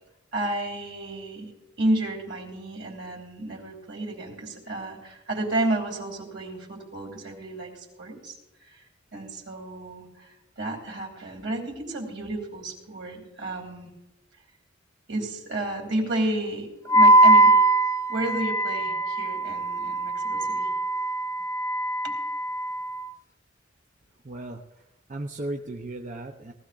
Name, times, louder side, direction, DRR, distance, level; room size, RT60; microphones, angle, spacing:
voice 1, 0.3-1.5 1.8-7.7 8.0-8.4 8.6-8.8 9.1-13.9 15.1-17.5 18.1-20.7 22.0-22.1, right 1 dB, 70° right, 0 dB, 3.0 m, -31 dB
Wind instrument woodwind instrument, 16.9-23.0, right 2 dB, 15° left, 0.4 m, -21 dB
voice 2, 24.2-24.8 25.1-26.5, right 2 dB, 40° right, 1 dB, 0.7 m, -36 dB
19.0 x 14.5 x 2.5 m, 0.94 s
head